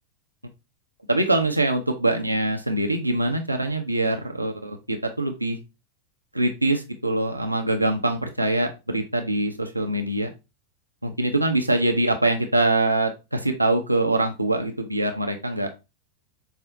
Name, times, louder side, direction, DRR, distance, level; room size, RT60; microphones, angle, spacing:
voice 1, 1.1-5.6 6.3-10.3 11.0-15.7, right 2 dB, 85° right, 4 dB, 0.4 m, -24 dB
4.8 x 2.0 x 2.6 m, 0.26 s
figure-of-eight pair, 90°, 0 cm